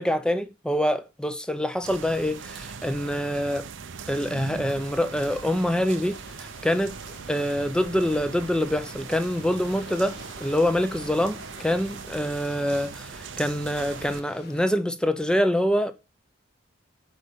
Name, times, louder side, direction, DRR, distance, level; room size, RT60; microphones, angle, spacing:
voice 1, 0.0-3.7 4.1-7.0 7.3-15.9, equal, 5° left, 0.7 m, -25 dB
sound 1, 1.8-14.2, right 5 dB, 60° right, 0.7 m, -40 dB
sound 2, 4.1-14.7, left 2 dB, 50° left, 1.6 m, -49 dB
8.2 x 5.0 x 7.0 m
head